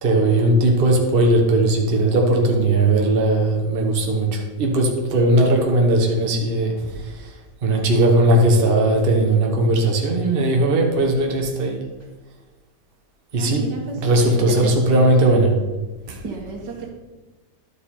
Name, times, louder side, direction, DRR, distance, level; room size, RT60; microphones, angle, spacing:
voice 1, 0.0-7.3 7.6-11.8 13.3-13.7 14.0-15.6 16.1-16.2, right 1 dB, 35° right, 1 dB, 1.2 m, -18 dB
voice 2, 13.4-14.0 14.6-15.1 16.2-16.9, right 4 dB, 80° right, 0 dB, 2.1 m, -33 dB
11.5 x 5.2 x 4.3 m, 1.2 s
omnidirectional pair, 1.8 m